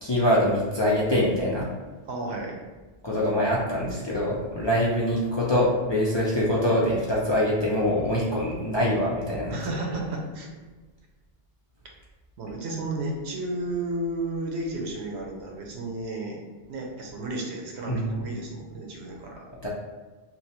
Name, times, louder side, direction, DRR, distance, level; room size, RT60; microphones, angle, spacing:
voice 1, 0.0-1.7 3.0-9.6 17.9-18.2 19.6-19.7, left 1 dB, 40° left, -6 dB, 0.4 m, -24 dB
voice 2, 2.0-2.6 9.5-10.5 12.4-16.4 16.7-19.4, right 2 dB, 85° right, 0 dB, 1.0 m, -32 dB
2.9 x 2.1 x 4.1 m, 1.3 s
omnidirectional pair, 1.1 m